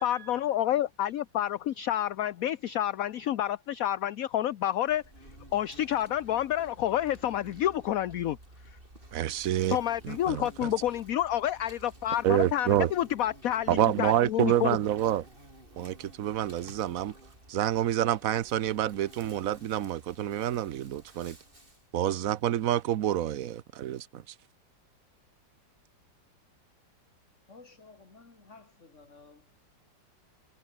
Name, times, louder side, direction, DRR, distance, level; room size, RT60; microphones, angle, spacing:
voice 1, 0.0-5.0 5.5-8.4 9.7-14.8, left 12 dB, 60° left, 1.0 m, -29 dB
Insect, 4.8-21.9, right 1 dB, 30° right, 7.0 m, -53 dB
voice 2, 9.1-9.8 10.0-10.7 12.2-12.9 13.7-15.2 15.8-17.1 17.5-21.4 21.9-24.3, right 11 dB, 60° right, 1.1 m, -28 dB
voice 3, 27.5-29.6, left 3 dB, 40° left, 3.3 m, -54 dB
omnidirectional pair, 1.9 m